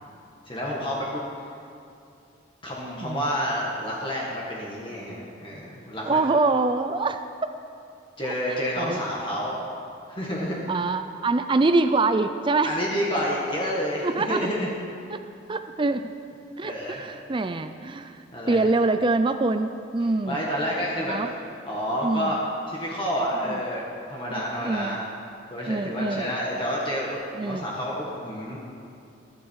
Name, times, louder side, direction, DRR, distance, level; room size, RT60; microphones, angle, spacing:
voice 1, 0.5-1.5 2.6-6.2 8.2-9.6 10.1-10.7 12.6-14.7 16.6-17.0 18.3-18.6 20.3-21.2 21.7-22.4 22.7-23.8 24.1-25.1 25.5-28.6, equal, 25° left, -4 dB, 1.9 m, -29 dB
voice 2, 6.0-7.2 8.5-9.0 10.7-12.8 14.0-14.4 15.1-15.2 15.5-16.1 16.6-20.4 21.1-21.3 22.0-22.4 23.5-23.6 24.3-25.0 25.7-26.3 27.3-27.7, right 3 dB, 25° right, 9 dB, 0.4 m, -25 dB
21.0 x 10.5 x 4.7 m, 2.6 s
head